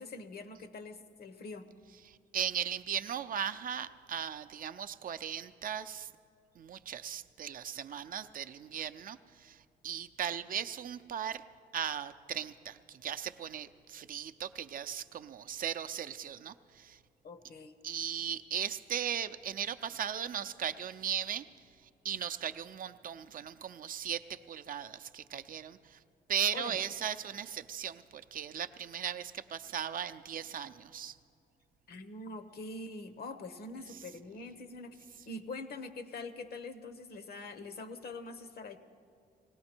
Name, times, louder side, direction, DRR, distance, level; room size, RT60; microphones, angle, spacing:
voice 1, 0.0-1.7 17.2-17.7 26.5-26.8 31.9-35.0 35.2-38.8, left 3 dB, 65° left, 11 dB, 0.9 m, -44 dB
voice 2, 2.0-6.1 6.6-11.4 11.7-17.0 17.8-21.5 22.0-26.0 26.3-31.2, right 9 dB, 55° right, 11 dB, 0.5 m, -37 dB
19.5 x 16.5 x 4.4 m, 2.4 s
cardioid pair, 100°, 17 cm